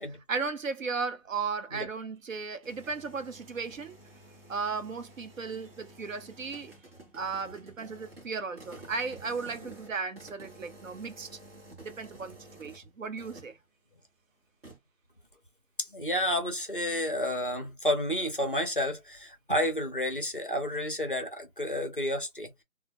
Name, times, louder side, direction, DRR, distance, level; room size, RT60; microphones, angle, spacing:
voice 1, 0.3-4.0 4.5-6.7 7.1-11.4 11.8-13.6, right 5 dB, 60° right, 0.7 m, -35 dB
sound 1, 2.4-12.9 13.2-13.6 14.6-14.8, right 1 dB, 40° right, 1.0 m, -51 dB
voice 2, 15.8-22.6, left 1 dB, 35° left, 0.6 m, -30 dB
2.1 x 2.1 x 2.8 m
hypercardioid pair, 175°, 44 cm